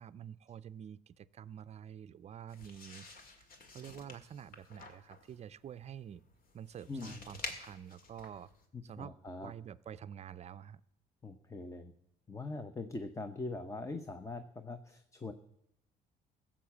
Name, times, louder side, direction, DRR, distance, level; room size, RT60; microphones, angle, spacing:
voice 1, 0.0-3.1 3.4-6.2 6.5-8.5 8.8-9.1 9.4-10.8, right 9 dB, 40° right, 17 dB, 0.5 m, -48 dB
sound 1, 2.5-8.7, left 3 dB, 55° left, 2.0 m, -50 dB
voice 2, 6.9-7.2 9.0-9.5 11.2-11.9 12.3-15.3, left 3 dB, 20° left, 9 dB, 0.8 m, -42 dB
15.5 x 7.3 x 7.2 m, 0.80 s
cardioid pair, 110°, 17 cm